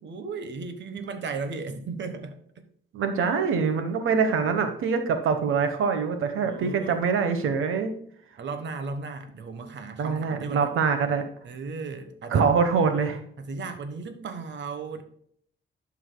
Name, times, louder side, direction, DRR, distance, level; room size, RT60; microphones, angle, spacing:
voice 1, 0.0-2.3 6.4-7.0 8.4-10.7 11.4-12.5 13.4-15.0, right 4 dB, 60° right, 8 dB, 1.2 m, -35 dB
voice 2, 2.9-7.9 10.0-11.2 12.3-13.2, right 5 dB, 90° right, 7 dB, 1.2 m, -24 dB
11.5 x 7.3 x 2.2 m, 0.64 s
cardioid pair, 125°, 21 cm